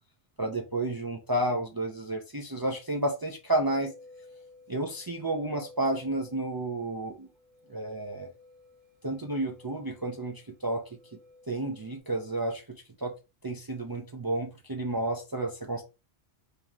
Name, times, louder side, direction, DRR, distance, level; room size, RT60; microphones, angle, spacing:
voice 1, 0.4-3.9 4.7-7.3 7.7-8.3 9.0-10.8 11.5-13.1 13.4-15.8, right 1 dB, 40° right, 1 dB, 0.3 m, -31 dB
sound 1, 3.5-12.0, left 2 dB, 70° right, 0.9 m, -54 dB
3.0 x 2.8 x 3.6 m, 0.28 s
omnidirectional pair, 1.2 m